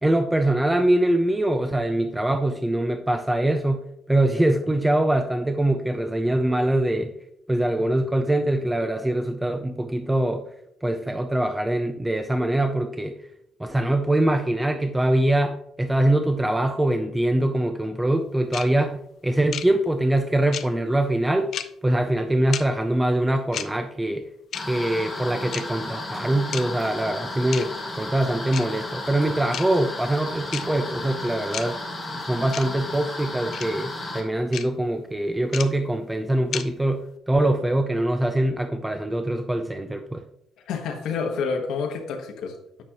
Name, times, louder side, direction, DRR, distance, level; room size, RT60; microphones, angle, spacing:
voice 1, 0.0-7.1 7.5-10.4 10.8-13.2 13.6-21.5 21.8-24.2 24.7-31.8 32.3-40.2, right 1 dB, 10° right, 7 dB, 0.4 m, -23 dB
sound 1, 18.5-18.6 19.5-19.6 20.5-20.6 21.5-21.6 22.5-22.6 23.5-23.7 24.5-24.6 25.5-25.6 26.5-26.6 27.5-27.6 28.5-28.6 29.5-29.6 30.5-30.6 31.5-31.6 32.5-32.6 33.5-33.6 34.5-34.6 35.5-35.6 36.5-36.6, left 9 dB, 55° left, 0.6 m, -30 dB
sound 2, 24.5-34.2, left 2 dB, 15° left, 1.7 m, -34 dB
voice 2, 40.6-42.8, left 5 dB, 75° left, 2 dB, 1.2 m, -29 dB
9.2 x 6.0 x 2.9 m, 0.75 s
cardioid pair, 145°, 0 cm